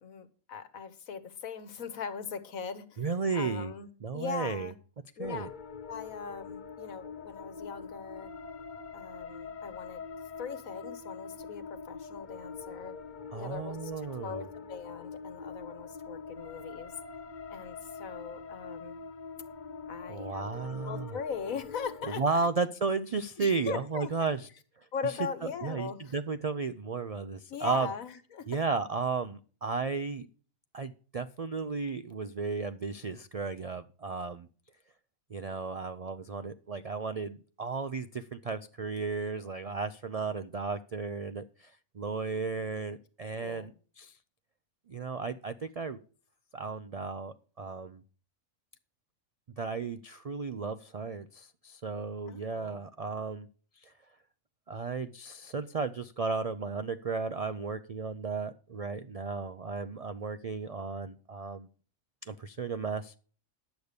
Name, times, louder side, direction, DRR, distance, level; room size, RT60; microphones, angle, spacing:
voice 1, 0.0-3.9 4.1-4.8 5.2-5.5 5.9-8.3 8.9-10.1 10.4-13.0 13.3-16.9 17.5-19.0 19.9-22.5 23.4-24.1 24.9-26.1 27.5-28.5 42.4-42.5 43.4-43.7 52.3-52.8, left 6 dB, 85° left, 12 dB, 1.6 m, -40 dB
voice 2, 3.0-3.7 4.0-4.7 5.2-5.5 13.3-14.5 20.1-21.2 22.2-24.5 25.0-25.1 25.6-27.9 28.5-30.3 30.7-34.5 35.3-43.7 44.0-44.2 44.9-46.0 46.5-48.0 49.6-53.5 53.8-53.9 54.7-61.7 62.2-63.2, right 4 dB, 65° right, 11 dB, 0.3 m, -34 dB
sound 1, 5.2-22.2, left 5 dB, 45° left, 0.7 m, -44 dB
10.5 x 8.1 x 5.1 m, 0.39 s
omnidirectional pair, 1.4 m